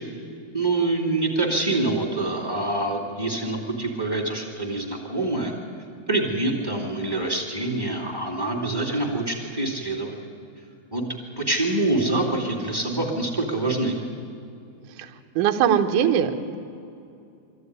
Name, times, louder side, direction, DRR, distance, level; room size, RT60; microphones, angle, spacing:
voice 1, 0.5-5.5 6.1-10.2 10.9-11.0 11.4-14.0, right 2 dB, 10° right, 1 dB, 1.3 m, -25 dB
voice 2, 15.0-16.6, right 8 dB, 70° right, 6 dB, 2.1 m, -22 dB
23.0 x 14.5 x 9.6 m, 2.5 s
omnidirectional pair, 4.7 m